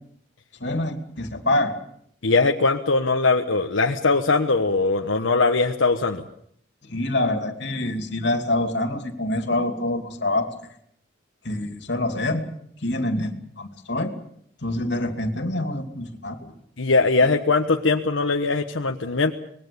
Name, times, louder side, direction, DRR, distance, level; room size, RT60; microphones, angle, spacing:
voice 1, 0.6-1.8 6.9-10.5 11.4-12.4 12.8-14.2 14.6-16.5, left 1 dB, 65° left, 6 dB, 2.8 m, -26 dB
voice 2, 2.2-6.2 16.8-19.3, left 3 dB, 90° left, 2 dB, 1.3 m, -21 dB
25.0 x 21.0 x 7.0 m, 0.67 s
head